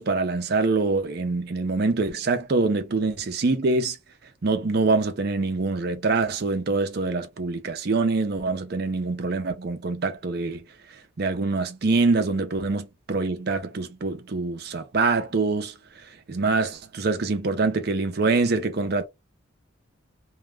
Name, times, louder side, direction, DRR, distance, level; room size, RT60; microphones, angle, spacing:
voice 1, 0.0-4.0 4.4-10.6 11.2-15.7 16.3-19.0, right 3 dB, 50° right, 0.5 m, -25 dB
2.2 x 2.1 x 3.3 m
head